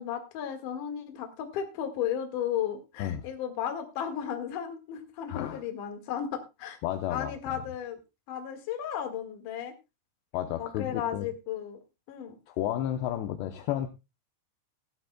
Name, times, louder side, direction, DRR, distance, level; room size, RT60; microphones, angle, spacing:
voice 1, 0.0-6.8 7.1-8.0 8.3-9.7 10.6-11.8 12.1-12.4, left 9 dB, 55° left, 5 dB, 2.8 m, -34 dB
voice 2, 5.3-5.6 6.8-7.4 10.3-11.3 12.5-13.9, left 12 dB, 75° left, 7 dB, 2.7 m, -32 dB
17.0 x 13.0 x 2.2 m, 0.25 s
omnidirectional pair, 5.3 m